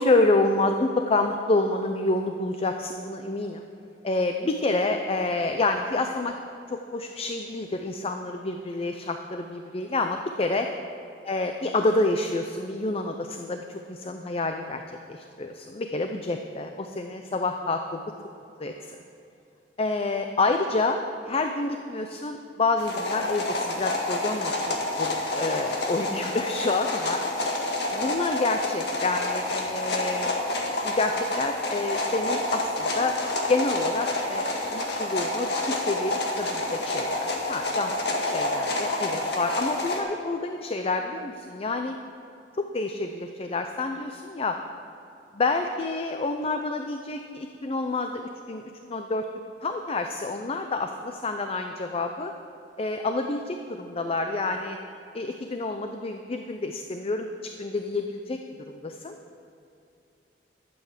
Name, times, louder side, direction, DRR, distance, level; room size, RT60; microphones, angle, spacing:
voice 1, 0.0-3.7 4.0-6.3 6.7-10.7 11.3-18.0 18.6-19.0 19.8-21.0 21.2-27.2 28.0-30.3 30.8-33.2 33.5-37.9 38.2-42.0 42.6-44.6 45.4-49.3 49.6-52.3 52.8-54.8 55.1-57.3 57.6-58.4 58.7-59.2, left 2 dB, 35° left, 5 dB, 0.5 m, -28 dB
sound 1, 22.8-40.0, left 2 dB, 65° left, 1.9 m, -28 dB
12.0 x 7.8 x 7.4 m, 2.7 s
head